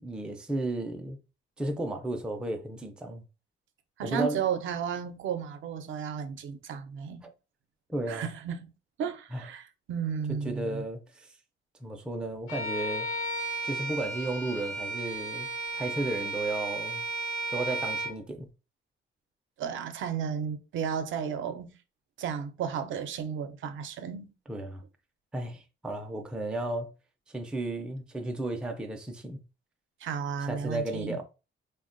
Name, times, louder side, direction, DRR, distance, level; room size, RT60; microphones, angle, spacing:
voice 1, 0.0-1.2 1.6-3.3 4.0-4.4 7.9-8.3 9.3-9.4 10.3-11.3 11.8-13.1 13.6-15.5 15.8-17.0 17.5-18.5 24.5-24.8 25.3-26.9 27.3-29.4 30.4-31.2, right 1 dB, 5° right, 0.3 m, -34 dB
voice 2, 4.0-7.2 8.1-8.7 9.0-10.8 19.6-21.8 22.2-24.3 30.0-31.2, right 7 dB, 75° right, 0.5 m, -33 dB
Bowed string instrument, 12.5-18.2, right 2 dB, 85° left, 0.9 m, -34 dB
3.3 x 2.1 x 2.5 m
cardioid pair, 155°, 20 cm